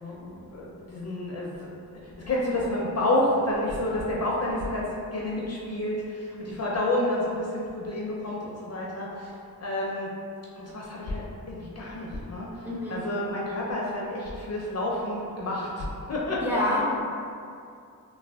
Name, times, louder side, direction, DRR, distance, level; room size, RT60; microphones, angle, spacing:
voice 1, 0.0-1.7 2.0-10.1 10.6-16.6, left 1 dB, 45° left, -4 dB, 0.5 m, -30 dB
voice 2, 12.6-13.0 16.4-16.9, left 1 dB, 5° right, -6 dB, 0.5 m, -27 dB
3.3 x 2.2 x 2.2 m, 2.5 s
wide cardioid pair, 95°, 36 cm